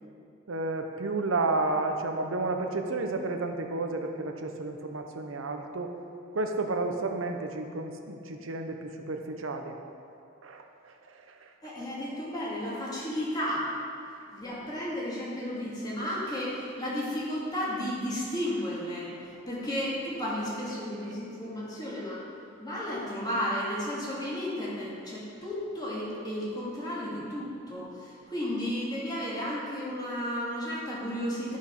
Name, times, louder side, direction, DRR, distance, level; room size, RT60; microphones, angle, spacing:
voice 1, 0.5-5.9 6.3-9.8 10.4-11.7 19.2-19.3, right 3 dB, 85° right, 4 dB, 0.8 m, -32 dB
voice 2, 11.6-13.7 14.3-22.2 22.6-31.6, equal, 20° left, -7 dB, 2.2 m, -33 dB
12.0 x 5.2 x 5.3 m, 2.5 s
head